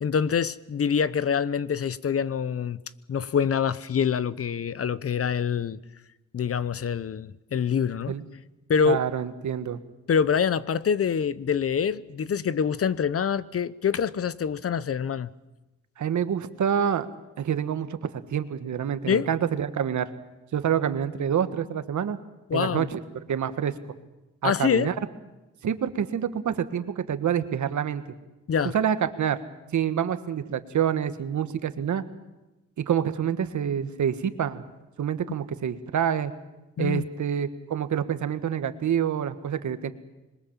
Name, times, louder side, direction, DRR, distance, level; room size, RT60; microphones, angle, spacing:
voice 1, 0.0-2.8 3.1-5.8 6.3-8.1 8.7-9.0 10.1-15.3 19.1-19.3 22.5-22.9 24.4-24.9 28.5-28.7 36.8-37.1, left 7 dB, 50° left, 0.8 m, -25 dB
voice 2, 8.8-9.8 16.0-17.1 17.4-20.1 20.5-22.2 22.5-23.0 23.3-23.7 24.4-24.9 25.6-28.0 28.7-29.4 29.7-32.0 32.8-34.6 35.0-36.3 36.8-39.9, right 8 dB, 70° right, 1.5 m, -27 dB
26.0 x 21.5 x 7.4 m
cardioid pair, 105°, 30 cm